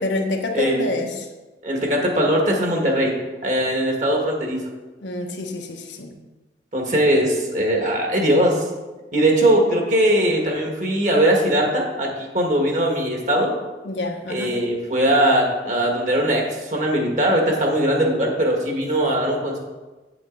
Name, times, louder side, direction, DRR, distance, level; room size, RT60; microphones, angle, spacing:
voice 1, 0.0-1.3 5.0-6.1 13.8-14.6, left 2 dB, 85° left, 2 dB, 1.1 m, -27 dB
voice 2, 0.5-0.9 1.6-3.1 3.4-4.6 6.7-8.6 9.1-13.5 14.3-19.6, right 1 dB, 45° right, 0 dB, 1.7 m, -20 dB
8.6 x 7.8 x 3.9 m, 1.2 s
head